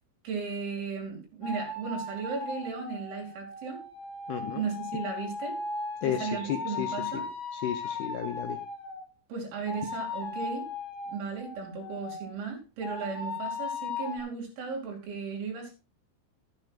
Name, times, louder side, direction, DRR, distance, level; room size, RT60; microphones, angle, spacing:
voice 1, 0.2-3.8 4.5-5.6 6.1-7.3 9.3-10.7 11.1-15.7, right 5 dB, 75° right, 5.0 m, -36 dB
sound 1, 1.4-9.0 9.7-12.3 12.8-14.2, left 3 dB, 35° left, 2.3 m, -37 dB
voice 2, 4.3-4.7 6.0-7.2 7.5-8.6, left 11 dB, 80° left, 2.3 m, -33 dB
12.5 x 11.5 x 2.5 m
omnidirectional pair, 5.4 m